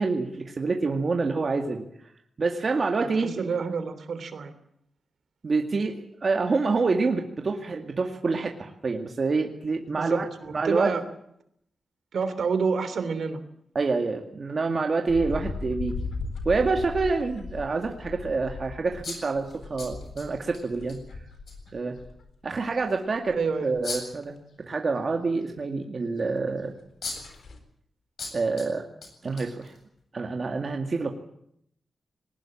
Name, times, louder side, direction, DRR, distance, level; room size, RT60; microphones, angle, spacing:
voice 1, 0.0-1.8 2.4-3.4 5.4-10.3 10.5-10.9 13.7-16.0 16.5-21.0 21.7-22.0 22.4-24.3 24.6-26.8 28.3-28.8 29.2-29.7 30.1-31.1, right 4 dB, 40° right, 3 dB, 2.2 m, -27 dB
voice 2, 2.9-4.5 10.0-11.0 12.1-13.4 23.3-23.7, right 5 dB, 65° right, 11 dB, 3.2 m, -29 dB
sound 1, 15.1-22.2 22.6-23.4 23.7-23.9 24.2-24.3 26.4-26.5 26.8-26.9 27.1-27.6, left 4 dB, 75° left, 4.2 m, -37 dB
sound 2, 19.0-20.6 20.9-21.0 21.5-21.6 23.8-24.3 26.5-26.6 27.0-27.4 28.2-28.7 29.0-30.0, left 3 dB, 60° left, 7.8 m, -37 dB
21.0 x 19.5 x 8.9 m, 0.72 s
wide cardioid pair, 150°, 0 cm